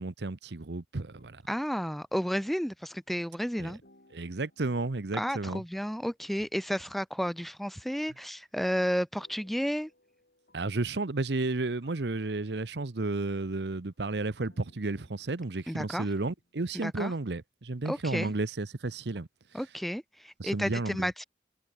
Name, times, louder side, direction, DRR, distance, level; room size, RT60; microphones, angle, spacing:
voice 1, 0.0-1.4 3.6-3.7 4.1-5.6 10.5-19.3 20.4-21.1, right 2 dB, 80° right, 0.9 m, -32 dB
sound 1, 1.0-3.5 3.8-7.0 9.1-17.3, left 1 dB, 70° left, 7.6 m, -67 dB
voice 2, 1.5-3.8 5.1-9.9 15.7-16.1 16.8-17.1 17.8-18.3 19.5-21.2, equal, ahead, 0.5 m, -32 dB
head